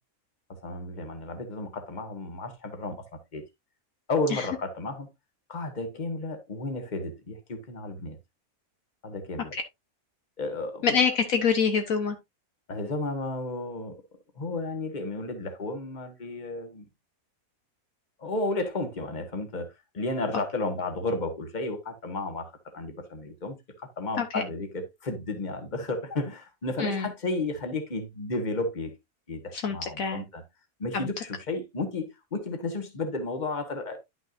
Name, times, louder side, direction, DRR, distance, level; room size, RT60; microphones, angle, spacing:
voice 1, 0.5-3.5 4.1-5.1 5.5-8.2 9.0-9.6 10.4-10.9 12.7-14.0 14.4-16.9 18.2-28.9 29.3-30.4 30.8-34.0, left 2 dB, 30° left, 1.5 m, -33 dB
voice 2, 10.8-12.1 24.2-24.4 26.8-27.1 29.5-30.2 30.9-31.1, left 6 dB, 65° left, 1.3 m, -25 dB
11.0 x 6.0 x 2.6 m
omnidirectional pair, 1.6 m